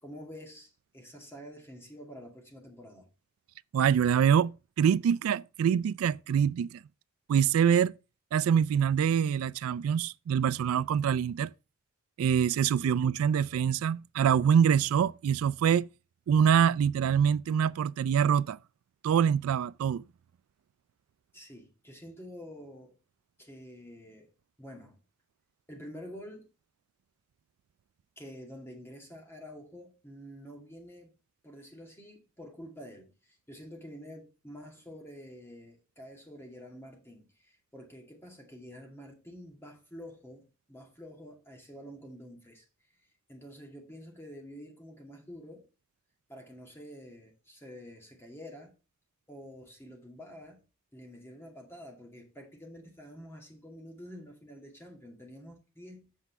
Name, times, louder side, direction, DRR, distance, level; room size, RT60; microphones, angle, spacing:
voice 1, 0.0-3.1 12.3-12.4 12.7-13.0 21.3-22.9 23.4-24.3 24.6-25.0 25.7-26.5 28.2-31.1 31.4-42.7 43.3-45.7 46.3-48.7 49.3-50.7 50.9-56.1, equal, 10° left, 2.3 m, -48 dB
voice 2, 3.7-6.8 7.3-7.9 8.3-11.5 12.2-15.9 16.3-18.6 19.0-20.0, right 8 dB, 85° right, 0.3 m, -25 dB
8.2 x 5.4 x 4.6 m
head